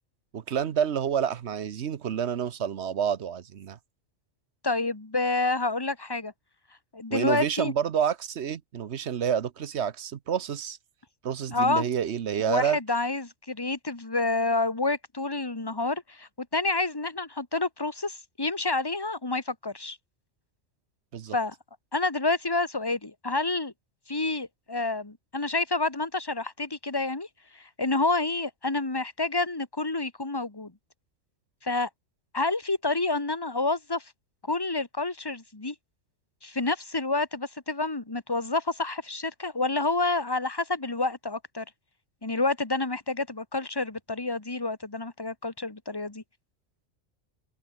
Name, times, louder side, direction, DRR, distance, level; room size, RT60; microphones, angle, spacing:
voice 1, 0.3-3.8 7.1-10.8 11.2-12.8 21.1-21.4, right 8 dB, 65° right, 1.1 m, -28 dB
voice 2, 4.6-6.3 6.9-7.7 11.5-11.9 12.4-20.0 21.3-21.5 21.9-23.7 24.1-27.3 27.5-30.7 31.6-31.9 32.3-34.1 34.5-35.7 36.4-41.6 42.2-46.2, left 3 dB, 20° left, 1.8 m, -28 dB
open air
omnidirectional pair, 1.3 m